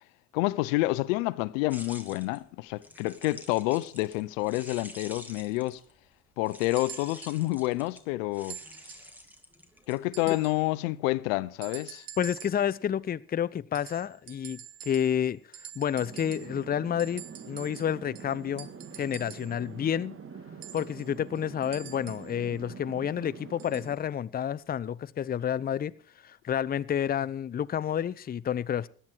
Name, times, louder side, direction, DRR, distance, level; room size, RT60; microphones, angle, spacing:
voice 1, 0.3-5.8 6.4-8.6 9.9-12.0, left 20 dB, 85° left, 0.7 m, -28 dB
sound 1, 1.7-6.0 6.4-10.4, equal, 5° right, 2.5 m, -48 dB
sound 2, 6.8-7.4 8.5-9.2 10.1-10.7 11.6-12.7 13.7-15.3 15.5-16.6 17.0-19.6 20.6-22.3 23.6-23.9 24.8-24.9, right 10 dB, 60° right, 1.7 m, -47 dB
voice 2, 12.2-15.4 15.8-18.7 19.0-20.2 20.7-25.9 26.2-28.9, left 9 dB, 25° left, 0.5 m, -30 dB
sound 3, 16.0-23.9, right 6 dB, 35° right, 2.0 m, -45 dB
17.0 x 11.5 x 4.5 m
supercardioid pair, 80°, 38 cm